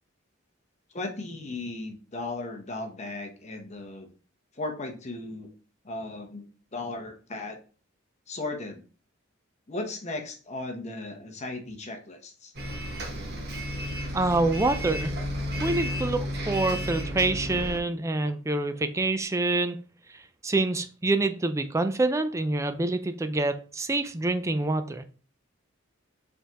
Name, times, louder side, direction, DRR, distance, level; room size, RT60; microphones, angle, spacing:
voice 1, 0.9-4.1 4.5-5.5 5.8-6.4 6.7-7.6 8.3-8.8 9.7-12.5, left 2 dB, 35° left, 0.9 m, -36 dB
Bus, 12.5-17.8, equal, 55° right, 1.2 m, -32 dB
voice 2, 14.1-15.2 15.6-19.8 20.1-25.0, right 2 dB, 15° right, 0.4 m, -26 dB
5.2 x 3.5 x 2.9 m
head